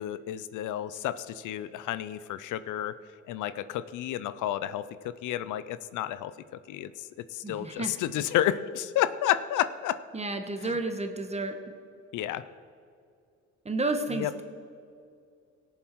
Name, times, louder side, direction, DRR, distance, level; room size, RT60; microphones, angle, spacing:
voice 1, 0.0-2.9 3.3-6.3 6.7-10.0 10.6-10.7 12.1-12.4 14.1-14.3, left 12 dB, 80° left, 14 dB, 0.6 m, -31 dB
voice 2, 7.4-7.9 10.1-11.5 13.6-14.4, right 2 dB, 20° right, 6 dB, 1.3 m, -31 dB
17.5 x 7.3 x 4.6 m, 2.4 s
cardioid pair, 90°, 30 cm